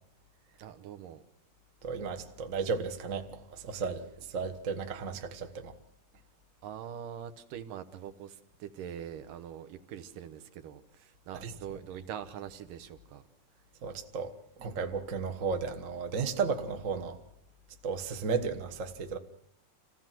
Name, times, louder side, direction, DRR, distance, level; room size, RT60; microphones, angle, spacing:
voice 1, 0.6-1.2 6.6-13.2, right 9 dB, 90° right, 2.8 m, -43 dB
voice 2, 1.8-5.7 11.4-11.5 13.8-14.3 14.6-17.2 17.8-19.2, right 5 dB, 65° right, 0.7 m, -34 dB
26.5 x 16.0 x 7.6 m
omnidirectional pair, 3.7 m